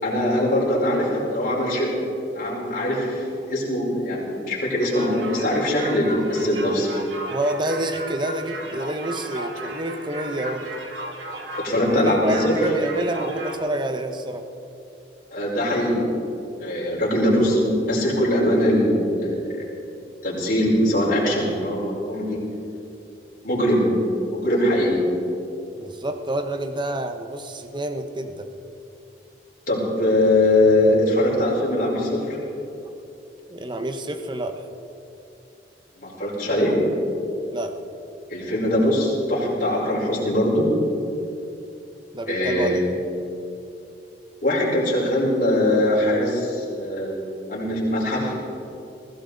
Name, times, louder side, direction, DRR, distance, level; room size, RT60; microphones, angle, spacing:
voice 1, 0.0-1.9 2.3-6.9 11.6-12.5 15.3-16.0 16.6-19.7 20.2-22.4 23.4-23.8 24.3-25.0 29.7-32.4 35.9-36.7 38.3-40.7 42.3-42.9 44.4-47.2 47.5-48.3, left 1 dB, 50° left, -5 dB, 4.8 m, -21 dB
sound 1, 4.8-13.6, right 1 dB, 80° right, 2.4 m, -35 dB
voice 2, 7.3-10.7 11.9-14.5 25.8-28.5 33.5-34.6 37.5-37.8 42.1-42.8, right 1 dB, 25° right, 7 dB, 1.0 m, -28 dB
20.5 x 16.0 x 4.0 m, 2.8 s
head